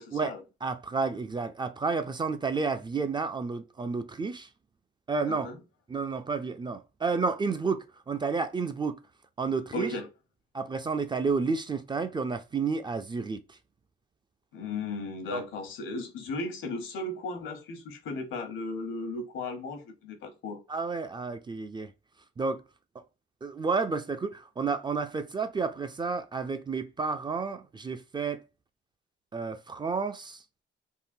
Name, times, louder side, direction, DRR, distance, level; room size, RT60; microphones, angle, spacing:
voice 1, 0.0-0.4 5.3-5.6 9.7-10.1 14.5-20.6, left 2 dB, 80° left, 1.0 m, -36 dB
voice 2, 0.6-4.5 5.1-5.5 5.9-9.0 9.4-9.9 10.5-13.4 15.3-15.4 20.7-21.9 22.4-22.6 23.4-28.4 29.3-30.4, right 4 dB, 25° right, 0.4 m, -31 dB
3.7 x 2.1 x 2.5 m
cardioid pair, 90°, 20 cm